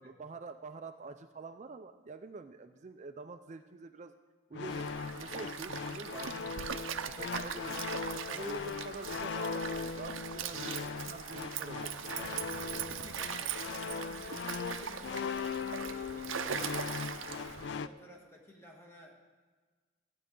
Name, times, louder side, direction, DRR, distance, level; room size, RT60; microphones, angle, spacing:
voice 1, 0.0-4.1 4.5-4.9 5.1-6.6 7.0-10.8 11.1-12.4, right 4 dB, 35° right, 8 dB, 0.4 m, -46 dB
sound 1, 4.5-17.9, left 5 dB, 60° left, 0.3 m, -39 dB
Stream, 4.7-17.8, right 8 dB, 90° right, 0.6 m, -41 dB
voice 2, 12.0-16.7 17.2-19.1, equal, 15° left, -1 dB, 1.7 m, -55 dB
15.0 x 9.4 x 3.8 m, 1.4 s
head